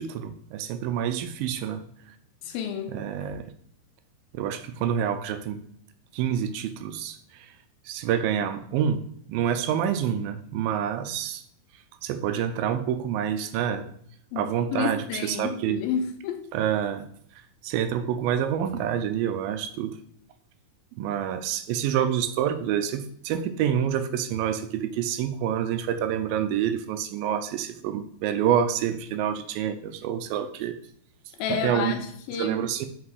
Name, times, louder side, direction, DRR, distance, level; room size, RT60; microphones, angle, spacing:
voice 1, 0.0-1.8 2.9-3.5 4.3-5.6 6.1-7.5 7.9-9.0 9.3-11.4 12.0-13.9 14.4-15.8 16.5-17.1 17.6-20.0 21.0-30.8 31.5-32.0 32.4-32.9, right 9 dB, 85° right, 2.4 m, -27 dB
voice 2, 2.4-3.0 14.3-16.5 31.4-32.6, left 7 dB, 85° left, 2.6 m, -30 dB
6.0 x 5.3 x 4.8 m
omnidirectional pair, 4.1 m